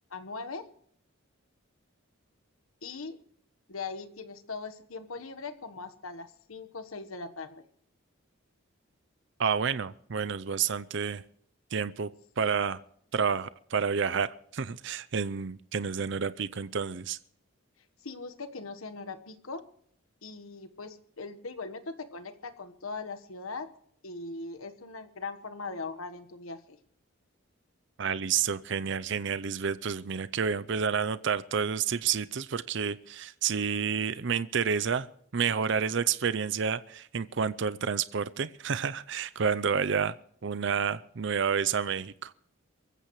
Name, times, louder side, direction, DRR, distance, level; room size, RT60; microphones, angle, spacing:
voice 1, 0.1-0.7 2.8-3.2 3.7-7.6 12.4-12.6 18.0-19.7 20.2-23.7 24.0-26.8, left 4 dB, 90° left, 9 dB, 1.3 m, -40 dB
voice 2, 9.4-11.2 11.7-12.1 12.4-12.8 13.1-14.3 14.5-17.2 28.0-35.1 35.3-40.1 40.4-42.3, right 6 dB, 60° right, 15 dB, 0.5 m, -29 dB
24.0 x 15.0 x 3.2 m, 0.63 s
head